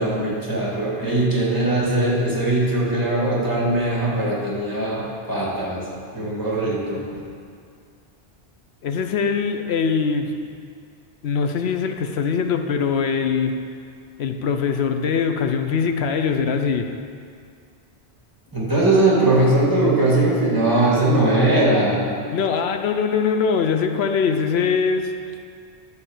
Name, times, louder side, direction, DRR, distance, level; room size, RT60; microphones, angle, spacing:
voice 1, 0.0-5.9 6.1-7.2 18.5-22.0, right 2 dB, 20° right, -6 dB, 2.3 m, -20 dB
voice 2, 8.8-10.3 11.2-13.6 14.2-17.0 22.3-25.1, left 6 dB, 75° left, 6 dB, 0.9 m, -22 dB
11.0 x 4.1 x 7.2 m, 2.2 s
omnidirectional pair, 1.1 m